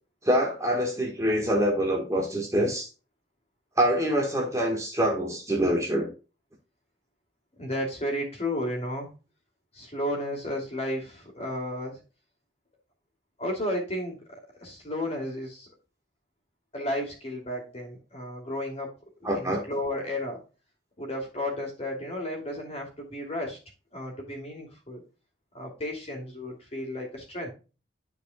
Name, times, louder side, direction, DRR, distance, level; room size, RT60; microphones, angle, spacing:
voice 1, 0.2-2.9 3.8-6.1 19.2-19.6, equal, 15° right, -1 dB, 1.5 m, -25 dB
voice 2, 7.6-9.1 9.7-12.0 13.4-15.7 16.7-18.9 19.2-20.4 21.0-23.6 23.9-25.0 25.5-27.5, left 1 dB, 35° left, 0 dB, 2.7 m, -33 dB
12.5 x 4.8 x 2.3 m, 0.32 s
head